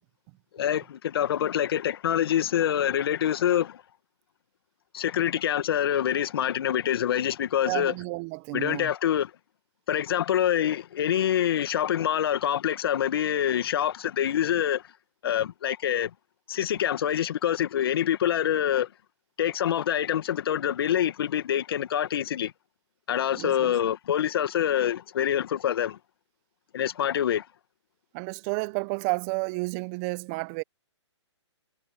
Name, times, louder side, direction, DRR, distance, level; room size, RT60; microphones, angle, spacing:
voice 1, 0.5-3.8 4.9-7.9 8.5-9.3 9.9-14.8 15.2-16.1 16.5-18.9 19.4-22.5 23.1-26.0 26.7-27.5, left 10 dB, 55° left, 2.1 m, -26 dB
voice 2, 7.6-8.9 23.3-23.7 28.1-30.6, right 28 dB, 30° right, 1.2 m, -31 dB
hypercardioid pair, 140°, 15 cm